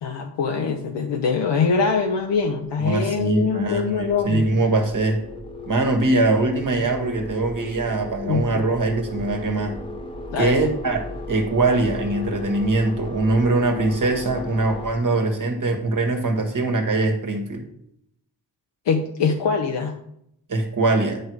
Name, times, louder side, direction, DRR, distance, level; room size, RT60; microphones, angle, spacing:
voice 1, 0.0-4.4 8.2-8.7 10.3-10.7 18.9-19.9, left 5 dB, 90° left, 3 dB, 0.8 m, -23 dB
sound 1, 1.7-15.0, left 3 dB, 15° left, 1.2 m, -36 dB
voice 2, 2.8-5.2 5.7-9.7 10.4-17.6 20.5-21.2, right 2 dB, 50° right, 4 dB, 1.6 m, -22 dB
9.1 x 4.9 x 4.7 m, 0.74 s
wide cardioid pair, 90°, 41 cm